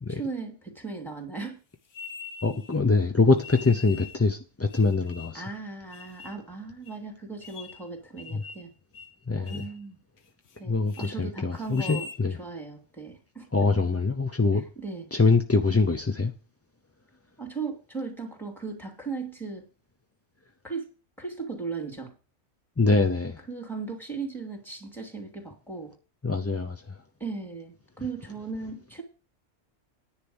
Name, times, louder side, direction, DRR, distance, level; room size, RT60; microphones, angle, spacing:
voice 1, 0.1-1.6 5.3-8.7 9.4-10.0 10.6-12.1 12.4-13.5 14.5-15.1 17.4-19.6 20.6-20.9 21.2-22.1 23.5-25.9 27.2-29.0, right 4 dB, ahead, 2.8 m, -37 dB
sound 1, 1.9-2.7 3.4-4.2 4.7-5.5 5.9-6.4 6.9-7.0 7.4-7.9 8.2-8.7 8.9-9.2 9.5-9.8 10.2-10.6 10.9-11.1 11.6-12.2, left 5 dB, 75° left, 1.4 m, -43 dB
voice 2, 2.4-5.4 8.3-8.4 9.3-9.6 10.7-12.3 13.5-14.6 15.1-16.3 22.8-23.4 26.2-26.8, left 3 dB, 20° left, 0.4 m, -24 dB
10.0 x 4.9 x 8.0 m
omnidirectional pair, 1.3 m